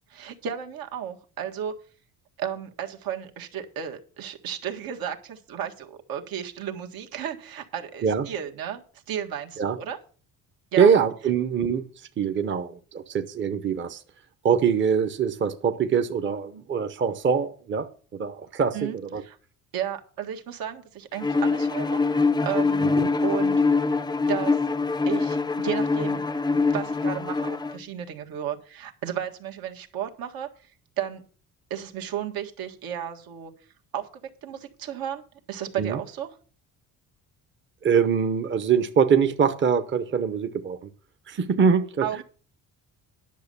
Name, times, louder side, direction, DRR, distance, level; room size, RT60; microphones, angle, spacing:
voice 1, 0.1-1.8 2.4-10.0 10.7-10.9 18.7-19.4 19.7-22.0 22.4-22.9 23.2-23.9 24.3-24.6 25.1-26.2 26.5-30.5 31.0-31.2 31.7-33.5 33.9-34.1 34.4-36.3 42.0-42.2, right 9 dB, 75° right, 1.8 m, -33 dB
voice 2, 10.8-11.8 12.2-14.0 14.4-19.2 22.8-23.1 35.8-36.0 37.8-40.8 41.3-42.2, right 6 dB, 35° right, 0.8 m, -23 dB
Bowed string instrument, 21.2-27.8, left 4 dB, 10° left, 0.4 m, -24 dB
10.5 x 6.5 x 6.8 m
cardioid pair, 115°, 35 cm